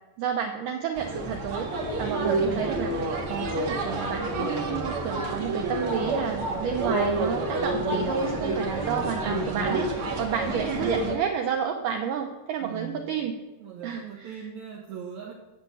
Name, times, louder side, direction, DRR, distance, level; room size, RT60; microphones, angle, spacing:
voice 1, 0.2-2.9 3.3-13.4 13.8-14.5, right 7 dB, 90° right, 4 dB, 1.9 m, -31 dB
sound 1, 1.0-11.2, right 2 dB, 45° right, 1.8 m, -28 dB
voice 2, 2.2-2.6 12.6-13.0 13.6-15.3, right 7 dB, 65° right, -2 dB, 1.8 m, -40 dB
10.5 x 7.9 x 8.3 m, 1.1 s
omnidirectional pair, 4.9 m